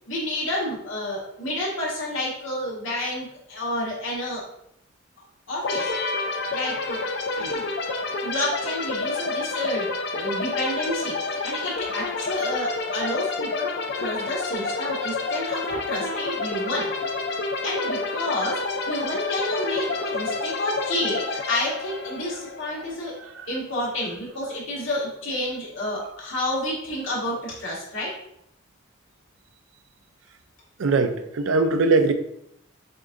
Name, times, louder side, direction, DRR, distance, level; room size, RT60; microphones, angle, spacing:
voice 1, 0.1-4.4 5.5-5.9 6.5-7.0 7.4-7.6 8.2-16.9 17.6-23.1 23.5-28.2, left 1 dB, 75° left, -4 dB, 1.5 m, -30 dB
sound 1, 5.6-23.2, left 3 dB, 55° left, 0.4 m, -29 dB
voice 2, 30.8-32.1, right 3 dB, 75° right, 8 dB, 0.4 m, -21 dB
6.4 x 2.5 x 2.6 m, 0.75 s
head